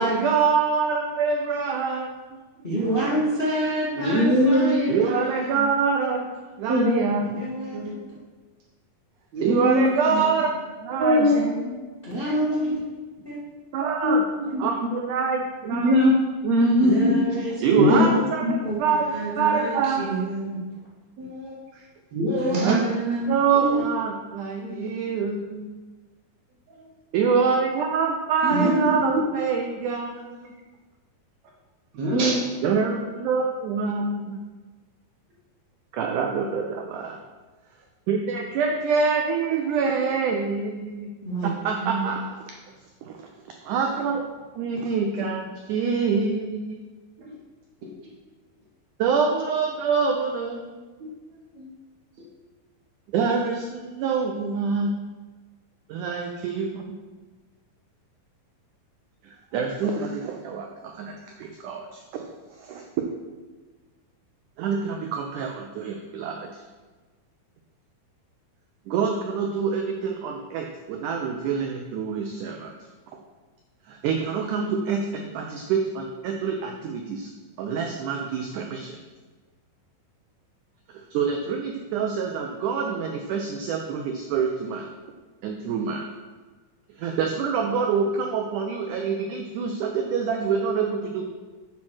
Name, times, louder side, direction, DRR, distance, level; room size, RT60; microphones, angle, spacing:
voice 1, 0.0-2.4 4.9-6.3 6.6-7.5 9.4-10.5 10.8-11.6 13.7-14.2 14.6-15.9 17.6-19.1 19.4-20.2 22.6-22.9 23.3-25.7 27.1-30.5 32.6-34.4 35.9-37.2 38.1-41.1 41.4-42.4 43.0-43.3 43.6-44.2 44.6-46.8 49.0-50.8 53.1-54.9 55.9-57.0 59.2-62.2 62.6-62.8 64.6-66.5 68.9-72.7 73.9-77.3 77.6-79.0 80.9-84.9 85.4-86.1 87.0-91.2, right 5 dB, 85° right, 2 dB, 1.7 m, -26 dB
voice 2, 2.6-5.7 7.2-7.9 10.1-10.3 12.0-12.8 13.2-13.4 16.8-18.2 18.6-18.8 19.1-20.6 22.5-23.7 28.5-29.0 41.2-41.5 41.8-42.0, right 1 dB, 85° left, -7 dB, 0.4 m, -27 dB
voice 3, 3.9-4.8 6.7-7.1 7.7-8.0 9.3-9.9 11.0-11.8 12.1-12.2 14.0-14.9 15.6-16.2 16.4-17.3 17.7-18.5 21.2-21.6 22.1-22.7 24.6-24.8 26.8-26.9 28.4-28.8 31.9-32.5 34.0-34.1 44.9-45.0 47.2-47.4 47.8-47.9 51.0-51.1 51.5-51.7, left 1 dB, 65° right, -2 dB, 1.8 m, -22 dB
8.0 x 4.2 x 6.2 m, 1.3 s
omnidirectional pair, 4.3 m